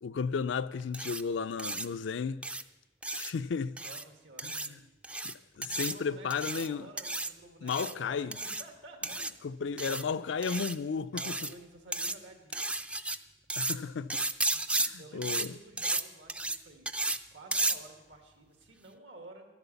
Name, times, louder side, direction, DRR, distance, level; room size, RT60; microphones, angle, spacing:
voice 1, 0.0-2.4 3.1-3.8 4.4-4.8 5.2-6.9 7.6-8.4 9.4-11.3 13.6-14.2 14.8-15.5, left 5 dB, 75° left, 0.4 m, -34 dB
sound 1, 0.9-1.2 1.6-1.9 2.4-2.6 3.0-3.3 3.8-4.0 4.4-4.7 5.0-5.3 5.6-5.9 6.3-6.7 7.0-7.3 7.7-7.9 8.3-8.6 9.0-9.3 9.8-10.0 10.4-10.7 11.2-11.5 11.9-12.1 12.5-13.2 13.5-13.8 14.1-14.9 15.2-15.5 15.8-16.0 16.3-16.6 16.9-17.2 17.5-17.8, right 2 dB, 5° right, 0.3 m, -33 dB
voice 2, 3.8-4.9 5.5-10.2 11.1-12.8 14.5-16.9 17.3-19.5, right 2 dB, 90° right, 1.9 m, -52 dB
12.5 x 8.2 x 7.0 m
head